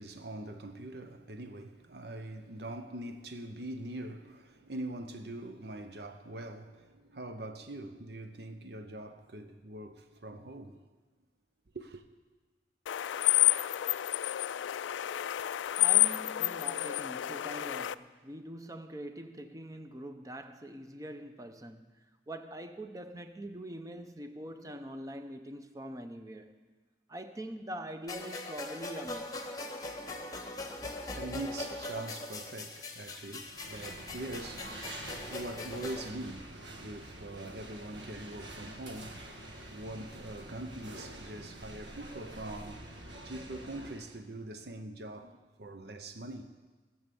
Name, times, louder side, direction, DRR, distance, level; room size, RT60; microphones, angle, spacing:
voice 1, 0.0-10.8 11.7-12.0 30.1-46.7, right 1 dB, 60° right, 0.7 m, -43 dB
sound 1, 12.9-17.9, left 15 dB, 85° left, 0.3 m, -29 dB
voice 2, 15.8-21.9 22.3-26.5 27.1-29.5, right 1 dB, 20° right, 0.6 m, -43 dB
sound 2, 28.1-36.1, left 2 dB, 20° left, 1.0 m, -41 dB
sound 3, 33.5-44.2, right 1 dB, 80° right, 1.4 m, -47 dB
17.5 x 7.1 x 6.9 m
head